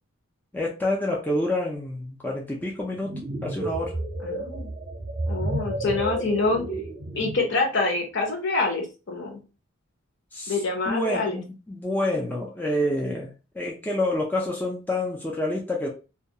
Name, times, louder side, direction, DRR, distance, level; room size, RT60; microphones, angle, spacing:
voice 1, 0.5-4.0 10.3-15.9, left 1 dB, 10° left, -2 dB, 0.3 m, -28 dB
sound 1, 2.9-7.6, right 1 dB, 25° right, 0.6 m, -31 dB
voice 2, 4.2-4.7 5.3-6.7 7.1-9.4 10.5-11.4, left 3 dB, 55° left, 1 dB, 0.7 m, -26 dB
2.3 x 2.2 x 2.7 m, 0.32 s
head